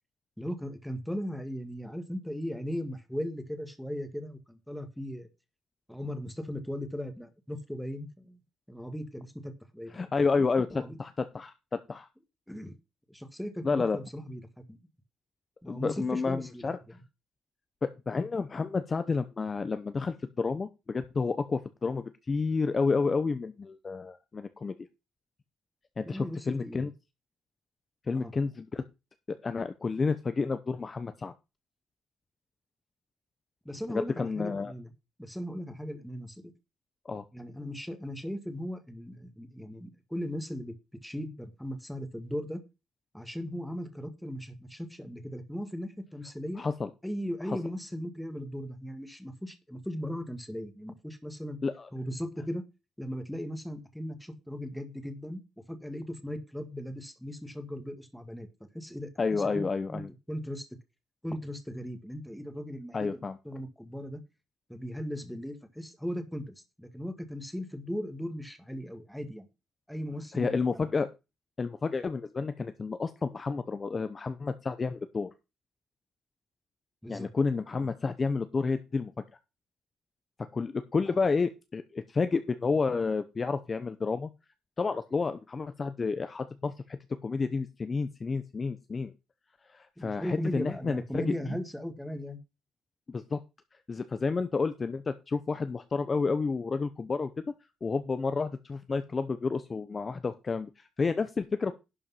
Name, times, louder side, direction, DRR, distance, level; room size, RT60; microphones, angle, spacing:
voice 1, 0.4-5.3 5.9-8.4 8.7-10.1 10.4-11.0 12.5-12.8 13.1-14.4 14.7-14.8 15.6-17.0 26.0-26.9 28.1-28.3 33.6-34.9 35.2-36.3 37.1-40.7 41.0-42.6 43.1-46.6 47.0-51.6 51.9-52.6 53.0-55.4 55.7-58.5 58.7-59.6 59.9-60.0 60.3-60.7 61.2-63.2 63.4-64.2 64.7-69.5 69.9-70.5 77.0-77.3 77.8-77.9 90.0-92.4, equal, ahead, 8 dB, 1.7 m, -38 dB
voice 2, 9.9-11.5 11.9-12.1 13.6-14.0 15.7-16.8 17.8-24.7 26.0-26.9 28.1-28.8 29.3-31.3 33.9-34.7 37.1-37.2 46.6-46.9 47.5-47.6 51.6-51.9 59.2-60.1 62.9-63.4 70.3-71.1 71.6-75.3 77.1-79.1 80.5-84.3 84.8-89.1 89.7-91.6 93.1-93.4 93.9-97.3 97.8-100.7 101.0-101.7, left 4 dB, 30° left, 11 dB, 0.8 m, -30 dB
11.5 x 5.2 x 5.7 m, 0.27 s
cardioid pair, 125°, 0 cm